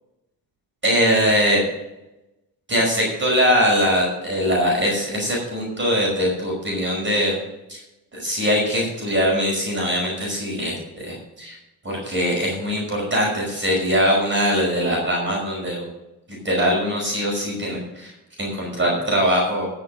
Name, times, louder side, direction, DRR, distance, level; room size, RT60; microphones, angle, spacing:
voice 1, 0.8-1.6 2.7-7.3 7.7-7.8 8.1-11.5 11.8-15.9 16.4-18.1 18.4-19.7, equal, 30° right, -2 dB, 5.4 m, -21 dB
13.5 x 6.8 x 6.1 m, 0.95 s
cardioid pair, 110°, 38 cm